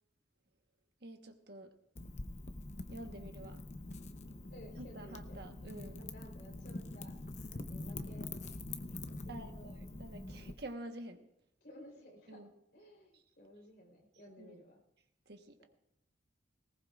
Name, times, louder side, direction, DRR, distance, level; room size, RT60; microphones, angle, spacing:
voice 1, 1.0-1.7 2.9-3.6 4.8-6.0 9.3-11.3 12.3-12.5 13.1-13.2 14.4-14.6 15.3-15.6, right 1 dB, 55° right, 5 dB, 1.2 m, -49 dB
Wind / Fire, 2.0-10.5, left 2 dB, 35° left, 0.7 m, -45 dB
voice 2, 4.5-5.4 6.0-7.2 7.5-8.3 9.2-9.7 11.6-12.4 12.7-14.8 15.6-15.7, equal, 55° left, 1 dB, 3.8 m, -55 dB
19.5 x 18.0 x 2.5 m, 0.79 s
head